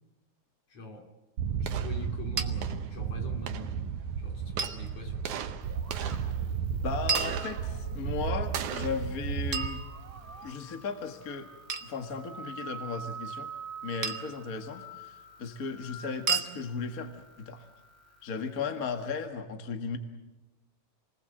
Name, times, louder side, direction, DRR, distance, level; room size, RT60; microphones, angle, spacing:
voice 1, 0.7-1.2 1.6-3.8 4.2-5.5, left 2 dB, 60° left, 3.6 m, -44 dB
sound 1, 1.4-10.5, right 7 dB, 90° right, 2.5 m, -33 dB
sound 2, 2.4-2.5 4.6-4.8 7.1-8.0 9.5-10.4 11.7-12.0 14.0-14.4 16.3-16.5, right 5 dB, 60° right, 0.8 m, -32 dB
sound 3, 5.6-19.3, right 4 dB, 5° right, 3.5 m, -47 dB
voice 2, 6.8-9.8 10.4-11.5 11.8-13.5 13.8-17.7 18.2-20.0, left 5 dB, 35° left, 1.7 m, -36 dB
28.5 x 20.5 x 7.9 m
omnidirectional pair, 3.3 m